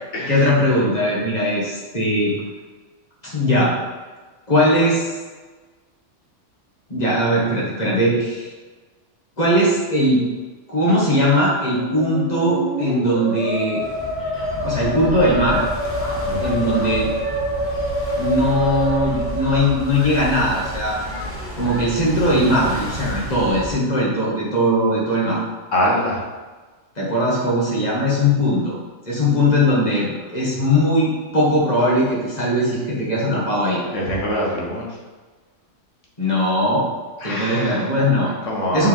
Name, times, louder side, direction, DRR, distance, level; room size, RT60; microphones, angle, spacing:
voice 1, 0.3-2.3 3.3-3.7 4.5-5.1 6.9-8.5 9.4-10.2 10.7-13.8 14.6-15.6 16.4-17.1 18.2-21.0 21.6-25.4 27.0-28.8 29.0-33.8 36.2-36.8 37.2-38.3 38.7-38.9, equal, 35° left, -6 dB, 1.9 m, -19 dB
Musical instrument, 11.6-20.3, equal, 65° left, 0.9 m, -26 dB
sound 1, 13.8-23.7, equal, 10° left, 1.1 m, -31 dB
voice 2, 25.7-26.2 33.7-34.9 37.2-37.9 38.5-38.9, left 1 dB, 80° left, -3 dB, 1.7 m, -24 dB
6.6 x 4.3 x 3.6 m, 1.3 s
omnidirectional pair, 1.2 m